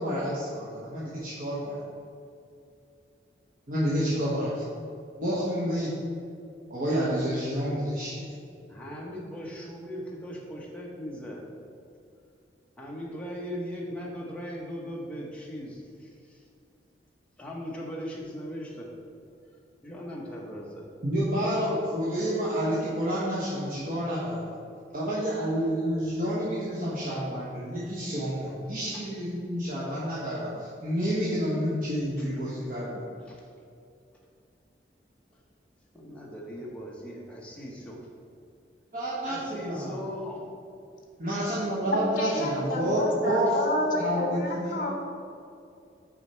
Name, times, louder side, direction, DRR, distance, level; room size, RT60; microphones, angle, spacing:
voice 1, 0.0-1.8 3.7-4.7 5.2-6.0 6.7-8.2 21.0-24.5 24.9-33.0 38.9-40.0 41.2-44.9, equal, 45° right, -8 dB, 1.1 m, -29 dB
voice 2, 8.7-11.4 12.8-16.5 17.4-18.9 19.8-20.9 28.9-29.0 32.2-32.3 33.2-33.5 35.3-35.4 35.9-38.1 39.3-40.5, equal, 5° left, -4 dB, 1.0 m, -39 dB
voice 3, 41.9-44.9, left 1 dB, 45° left, 1 dB, 1.1 m, -29 dB
6.6 x 4.9 x 4.4 m, 2.5 s
head